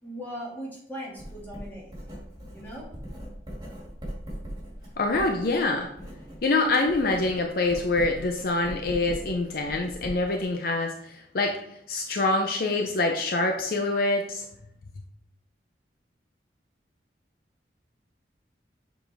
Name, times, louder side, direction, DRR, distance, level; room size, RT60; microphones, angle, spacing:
voice 1, 0.0-1.9 2.5-2.9, equal, 10° left, -5 dB, 1.7 m, -39 dB
Writing, 1.2-6.4 6.7-10.5, equal, 25° right, 2.0 m, -40 dB
voice 2, 5.0-5.9 6.4-11.6 11.9-14.4, left 2 dB, 55° left, 3 dB, 0.5 m, -25 dB
6.9 x 4.0 x 3.3 m, 0.73 s
head